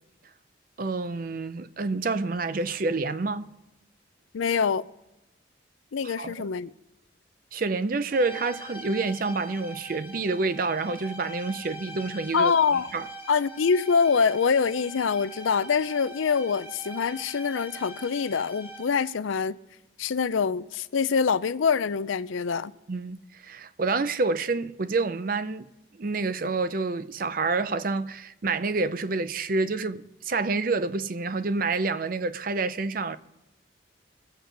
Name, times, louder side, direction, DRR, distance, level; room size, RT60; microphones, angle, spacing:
voice 1, 0.8-3.5 6.0-6.5 7.5-12.5 12.9-13.1 22.9-25.7 26.0-33.2, right 3 dB, 45° right, 0.5 m, -28 dB
voice 2, 4.3-4.9 5.9-6.7 12.3-12.9 13.3-19.6 20.0-22.7, left 5 dB, 85° left, 0.5 m, -25 dB
sound 1, 8.1-19.2, right 1 dB, 10° right, 1.6 m, -43 dB
21.5 x 8.1 x 3.9 m
head